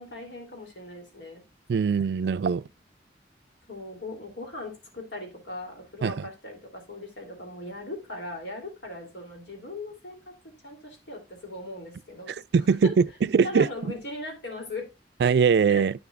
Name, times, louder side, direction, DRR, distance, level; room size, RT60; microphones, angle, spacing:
voice 1, 0.0-1.4 3.7-10.3 10.6-12.4 12.7-12.9 13.4-14.9 15.7-15.8, left 2 dB, 85° left, 3.2 m, -39 dB
voice 2, 1.7-2.6 6.0-6.1 12.5-13.0 13.3-13.7 15.2-15.9, right 6 dB, 65° right, 0.3 m, -21 dB
9.1 x 7.0 x 2.5 m
head